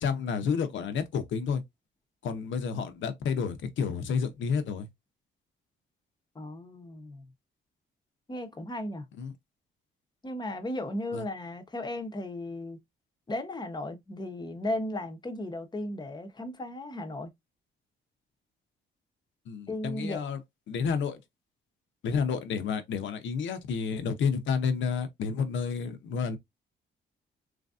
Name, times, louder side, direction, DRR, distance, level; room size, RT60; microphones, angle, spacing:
voice 1, 0.0-1.6 2.2-4.9 9.2-9.3 11.1-11.2 19.5-20.4 20.7-21.2 22.0-26.4, left 6 dB, 70° left, 0.8 m, -30 dB
voice 2, 6.3-7.3 8.3-9.1 10.2-12.8 13.3-17.3 19.7-20.3, left 1 dB, 20° left, 0.8 m, -35 dB
3.2 x 2.6 x 2.4 m
cardioid pair, 90°, 20 cm